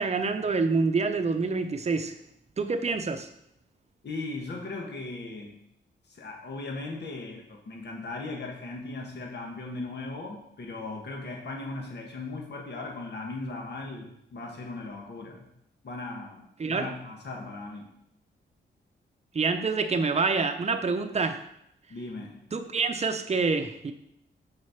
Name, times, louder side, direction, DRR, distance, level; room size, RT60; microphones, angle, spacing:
voice 1, 0.0-2.1 2.6-3.3 16.6-16.9 19.3-21.4 22.5-23.9, right 4 dB, 35° right, 7 dB, 0.7 m, -27 dB
voice 2, 4.0-5.6 6.1-15.5 15.8-17.9 21.9-22.4, left 3 dB, 60° left, 0 dB, 1.4 m, -38 dB
6.5 x 4.1 x 5.7 m, 0.77 s
cardioid pair, 75°, 20 cm